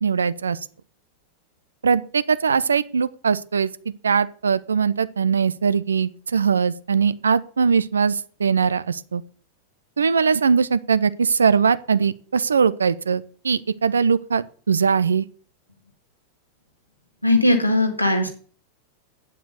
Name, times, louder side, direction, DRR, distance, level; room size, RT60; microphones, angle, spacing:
voice 1, 0.0-0.6 1.8-3.7 4.0-9.2 10.0-15.3, right 6 dB, 70° right, 0.6 m, -21 dB
voice 2, 17.2-18.3, left 1 dB, 90° left, 1.9 m, -18 dB
9.1 x 7.5 x 6.8 m
figure-of-eight pair, 90°, 0 cm